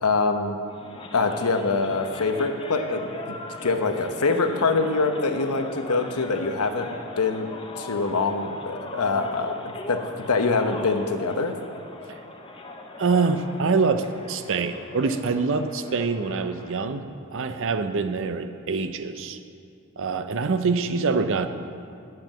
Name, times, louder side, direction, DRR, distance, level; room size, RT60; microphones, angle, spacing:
voice 1, 0.0-0.6 1.1-3.4 3.6-6.9 7.2-7.5 7.8-9.6 9.9-11.5, left 3 dB, 85° left, 6 dB, 0.9 m, -24 dB
sound 1, 0.7-16.9, left 1 dB, 25° left, 0.8 m, -39 dB
voice 2, 13.0-17.0 17.3-19.5 20.0-21.5, right 4 dB, 60° right, 9 dB, 0.6 m, -25 dB
9.0 x 7.7 x 7.6 m, 2.5 s
head